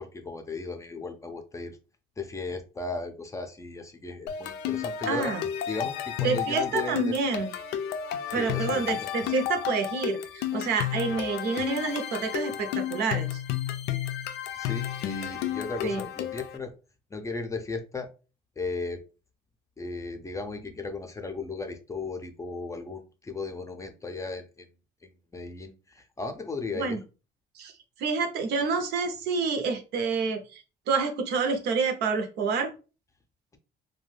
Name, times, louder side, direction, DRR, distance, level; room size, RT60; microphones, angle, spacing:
voice 1, 0.0-1.8 2.2-5.3 5.7-7.1 8.3-9.1 14.6-16.7 17.1-18.1 18.6-19.0 19.8-24.7 25.0-27.0, left 3 dB, 20° left, 6 dB, 0.4 m, -36 dB
sound 1, 4.3-16.6, left 10 dB, 80° left, 0.4 m, -32 dB
voice 2, 5.1-5.4 6.2-7.5 8.3-13.4 15.8-16.0 26.7-27.0 27.6-27.7 28.0-32.7, right 4 dB, 80° right, 5 dB, 0.7 m, -28 dB
2.5 x 2.2 x 3.2 m, 0.33 s
cardioid pair, 110°, 17 cm